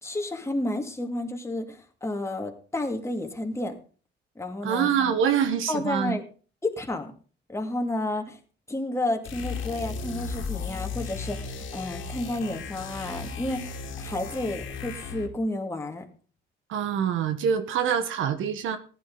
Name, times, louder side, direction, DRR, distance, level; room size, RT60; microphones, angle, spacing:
voice 1, 0.0-3.7 4.4-4.9 5.7-6.2 6.6-7.1 7.5-8.4 8.7-16.0, left 1 dB, 15° left, 3 dB, 2.3 m, -31 dB
voice 2, 4.6-6.2 16.7-18.8, right 8 dB, 80° right, 10 dB, 1.3 m, -25 dB
sound 1, 9.2-15.4, left 4 dB, 75° left, 2.3 m, -35 dB
15.0 x 11.0 x 3.9 m, 0.39 s
cardioid pair, 90°, 20 cm